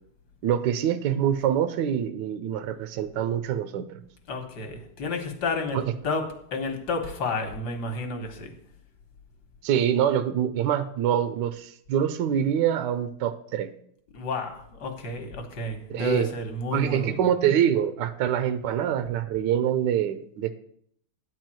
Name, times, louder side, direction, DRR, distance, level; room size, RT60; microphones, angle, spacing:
voice 1, 0.4-4.0 5.7-5.9 9.6-13.7 15.9-16.3 16.7-20.5, right 9 dB, 75° right, 1.0 m, -25 dB
voice 2, 4.3-8.5 14.1-17.3, left 3 dB, 55° left, 1.6 m, -31 dB
9.5 x 4.5 x 7.5 m
omnidirectional pair, 2.4 m